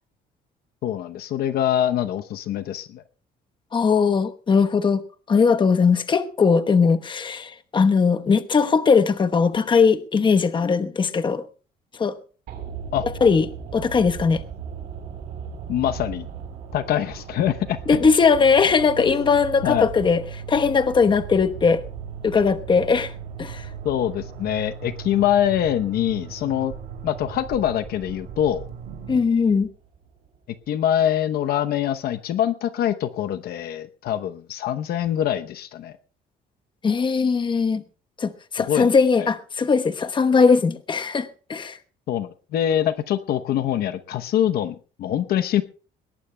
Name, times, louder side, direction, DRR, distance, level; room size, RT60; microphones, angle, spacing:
voice 1, 0.8-3.0 12.9-13.0 15.7-16.3 16.7-18.0 19.1-19.4 19.6-19.9 23.8-26.7 27.0-28.6 30.7-35.9 38.7-38.9 39.2-39.3 42.1-45.6, left 10 dB, 65° left, 0.9 m, -24 dB
voice 2, 3.7-5.0 5.3-11.4 12.0-12.2 13.2-13.5 13.7-14.4 17.9-21.8 22.2-23.1 23.4-23.7 29.1-29.7 36.8-37.8 38.2-41.8, left 5 dB, 30° left, 1.0 m, -19 dB
sound 1, 12.5-30.7 30.9-31.0, right 7 dB, 70° right, 3.9 m, -40 dB
sound 2, 14.9-29.2, right 7 dB, 85° right, 2.8 m, -39 dB
21.5 x 18.5 x 2.2 m
cardioid pair, 110°, 17 cm